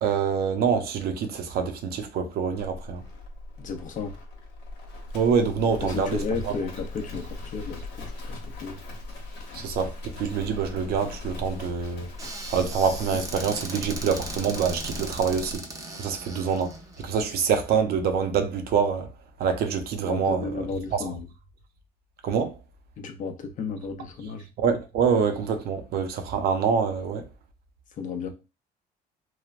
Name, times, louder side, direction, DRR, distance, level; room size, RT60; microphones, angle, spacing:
voice 1, 0.0-3.0 5.1-6.5 9.5-12.1 12.5-15.6 16.0-19.1 19.4-20.5 20.9-21.1 22.2-22.6 24.6-27.2, right 6 dB, 65° right, 0.6 m, -26 dB
Livestock farm animals working animals, 2.6-15.6, left 2 dB, 85° left, 0.9 m, -39 dB
voice 2, 3.6-4.1 5.8-8.8 20.1-21.3 23.0-24.5 27.9-28.3, left 5 dB, 50° left, 0.6 m, -34 dB
Squeak / Cupboard open or close, 12.2-17.5, right 2 dB, 20° right, 0.6 m, -39 dB
3.2 x 2.0 x 2.4 m
cardioid pair, 110°, 17 cm